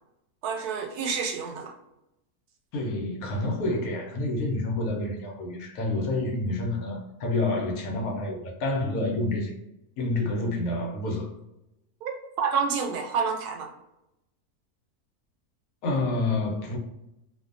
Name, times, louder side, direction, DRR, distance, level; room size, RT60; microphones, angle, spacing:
voice 1, 0.4-1.7 12.0-12.1 12.4-13.7, right 6 dB, 80° right, 1.1 m, -28 dB
voice 2, 2.7-9.5 10.0-11.3 15.8-16.8, left 2 dB, 75° left, 1.0 m, -28 dB
2.5 x 2.2 x 2.4 m
omnidirectional pair, 1.6 m